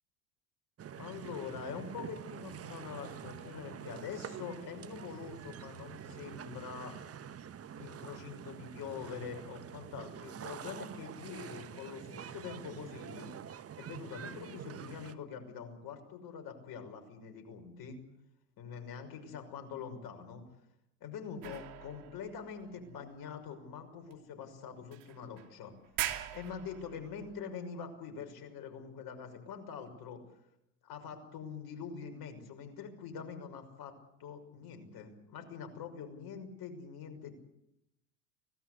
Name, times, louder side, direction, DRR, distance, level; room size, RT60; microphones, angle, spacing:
sound 1, 0.8-15.1, right 8 dB, 30° right, 1.4 m, -46 dB
voice 1, 1.0-6.9 7.8-13.3 13.8-18.0 18.6-20.4 21.0-25.7 26.3-30.2 30.8-33.9 34.2-37.3, left 6 dB, 50° left, 5 dB, 6.0 m, -44 dB
sound 2, 21.4-23.4 24.1-24.2 24.9-25.5 25.8-27.4, right 14 dB, 60° right, 2.7 m, -42 dB
25.0 x 18.0 x 8.2 m, 0.81 s
hypercardioid pair, 75°, 47 cm